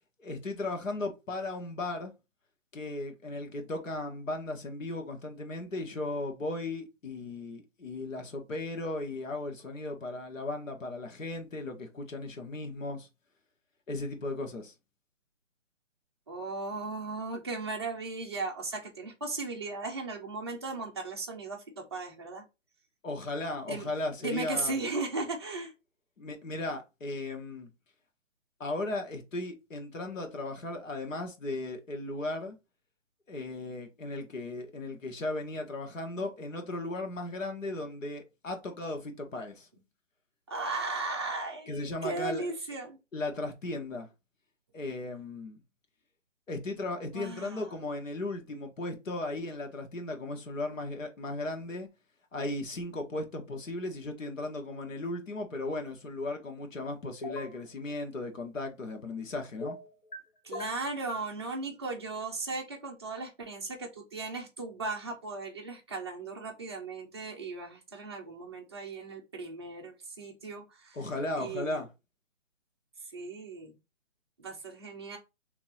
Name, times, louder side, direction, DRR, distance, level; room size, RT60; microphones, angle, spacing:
voice 1, 0.2-2.1 2.7-13.1 13.9-14.7 23.0-24.8 26.2-27.7 28.6-32.6 33.3-39.7 41.7-42.4 43.1-44.1 44.7-45.6 46.5-51.9 52.3-59.8 70.9-71.9, left 2 dB, 90° left, 1.3 m, -36 dB
voice 2, 16.3-22.4 23.7-23.9 24.2-25.7 40.5-43.0 47.1-47.7 60.4-71.0 71.4-71.8 73.1-73.7 74.4-75.2, right 3 dB, 20° right, 0.5 m, -37 dB
sound 1, 57.2-57.6 59.6-60.2 60.5-61.3, left 2 dB, 40° left, 0.6 m, -40 dB
3.0 x 2.8 x 3.9 m
hypercardioid pair, 160°, 38 cm